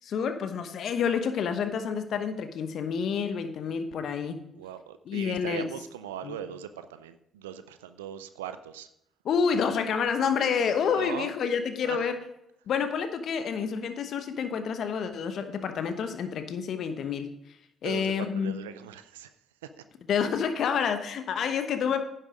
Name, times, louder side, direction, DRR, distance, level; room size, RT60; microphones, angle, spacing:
voice 1, 0.0-4.4 5.1-5.7 6.2-6.4 9.2-12.2 12.7-17.3 17.8-18.5 20.1-22.0, left 6 dB, 60° left, 8 dB, 1.1 m, -28 dB
voice 2, 4.6-8.9 10.9-11.3 11.8-12.0 17.8-19.3 19.6-19.8, right 9 dB, 85° right, 11 dB, 0.4 m, -39 dB
10.5 x 7.3 x 5.0 m, 0.79 s
hypercardioid pair, 45°, 0 cm